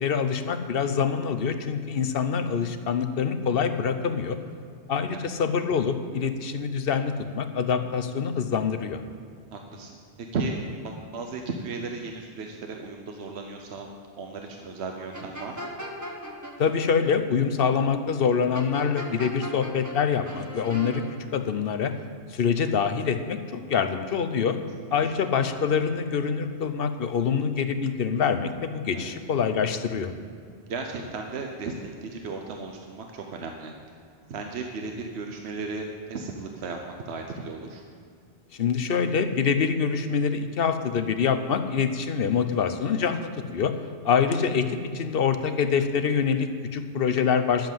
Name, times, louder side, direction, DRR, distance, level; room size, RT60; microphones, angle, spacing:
voice 1, 0.0-4.4 4.9-9.0 16.6-21.0 21.3-21.9 22.3-24.6 24.9-30.1 38.6-43.7 44.0-44.7 44.9-47.7, left 6 dB, 60° left, 9 dB, 0.9 m, -25 dB
voice 2, 9.5-9.9 10.2-13.9 14.2-15.7 25.0-25.1 28.9-29.1 30.7-33.7 34.3-37.8, right 3 dB, 75° right, 3 dB, 1.1 m, -35 dB
sound 1, 15.1-16.5 18.5-20.0 20.2-21.0, equal, 15° right, 1.4 m, -37 dB
11.5 x 7.5 x 7.4 m, 2.3 s
omnidirectional pair, 1.1 m